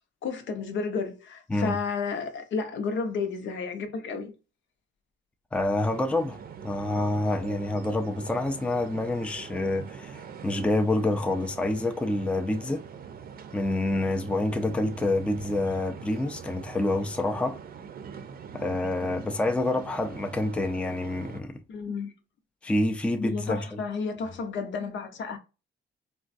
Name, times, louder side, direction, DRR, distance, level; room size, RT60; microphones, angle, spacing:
voice 1, 0.2-4.3 21.7-22.1 23.2-25.4, left 5 dB, 70° left, 0.7 m, -32 dB
voice 2, 5.5-6.4 6.6-12.9 13.5-17.6 18.5-21.6 22.6-23.8, left 2 dB, 5° left, 0.4 m, -27 dB
sound 1, 5.9-21.4, right 7 dB, 50° right, 0.6 m, -43 dB
3.5 x 2.2 x 2.5 m
cardioid pair, 90°, 20 cm